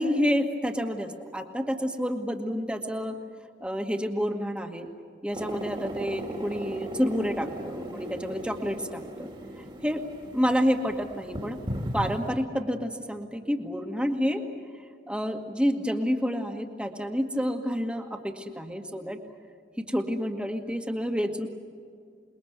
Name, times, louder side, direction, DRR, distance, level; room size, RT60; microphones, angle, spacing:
voice 1, 0.0-3.2 3.6-4.9 5.2-9.3 9.6-10.0 10.3-11.6 11.9-14.4 15.1-19.2 19.8-21.5, equal, 5° right, 4 dB, 2.0 m, -29 dB
sound 1, 5.3-12.3, right 1 dB, 30° right, 2.4 m, -37 dB
27.5 x 21.5 x 8.2 m, 2.2 s
head